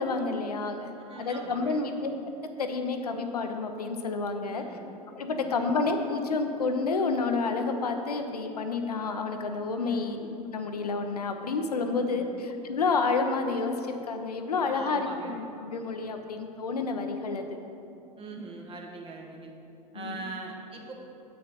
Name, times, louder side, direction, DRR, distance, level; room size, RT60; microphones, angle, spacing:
voice 1, 0.0-0.9 1.2-2.1 2.4-4.6 5.1-17.5 19.9-20.2, left 4 dB, 80° left, 6 dB, 0.6 m, -29 dB
voice 2, 1.0-1.8 4.4-4.9 5.3-5.5 9.8-10.1 11.9-12.3 14.7-15.3 18.2-19.5 19.9-20.9, right 3 dB, 25° right, 1 dB, 1.2 m, -42 dB
7.8 x 6.3 x 4.3 m, 2.8 s
figure-of-eight pair, 80°, 20 cm